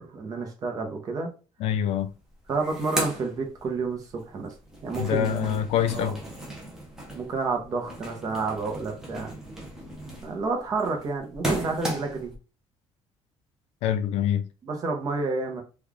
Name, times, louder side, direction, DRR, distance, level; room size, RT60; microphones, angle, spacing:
voice 1, 0.0-1.3 2.5-4.5 4.8-5.6 5.9-6.2 7.1-9.3 10.2-12.3 14.6-15.6, right 4 dB, 30° right, 0.8 m, -30 dB
voice 2, 1.6-2.1 5.0-6.2 13.8-14.5, left 9 dB, 65° left, 0.4 m, -25 dB
sound 1, 1.9-2.0 2.3-4.1 4.4-12.3, right 1 dB, 5° right, 0.7 m, -36 dB
3.1 x 2.3 x 3.6 m
cardioid pair, 180°, 11 cm